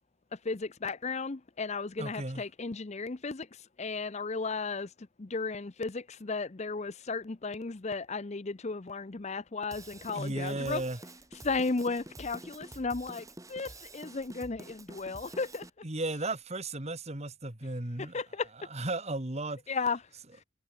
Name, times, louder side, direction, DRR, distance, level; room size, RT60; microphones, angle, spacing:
voice 1, 0.3-10.8 11.4-15.7 18.0-18.5 19.7-20.0 20.3-20.4, left 4 dB, 35° left, 0.6 m, -35 dB
voice 2, 2.0-2.4 10.1-11.0 15.8-18.2 18.7-19.6, right 2 dB, 30° right, 2.2 m, -35 dB
Drum kit / Drum, 9.7-15.7, right 2 dB, 15° right, 3.8 m, -48 dB
head